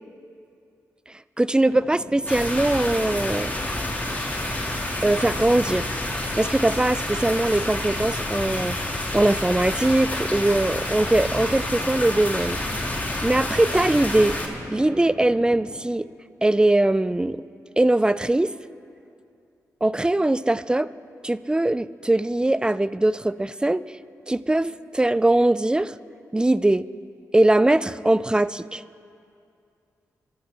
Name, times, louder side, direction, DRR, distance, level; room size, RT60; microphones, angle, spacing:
voice 1, 1.4-3.6 5.0-5.9 6.4-8.8 9.1-12.6 13.2-14.3 14.7-16.1 16.4-17.4 17.8-18.5 19.8-20.9 21.2-23.8 24.3-25.9 26.3-26.8 27.3-28.8, right 1 dB, 15° right, 16 dB, 0.4 m, -21 dB
sound 1, 1.7-15.8, left 2 dB, 40° left, 1.5 m, -42 dB
sound 2, 2.3-14.5, left 1 dB, 25° left, 3.2 m, -29 dB
23.5 x 13.0 x 3.4 m, 2.5 s
cardioid pair, 50°, 7 cm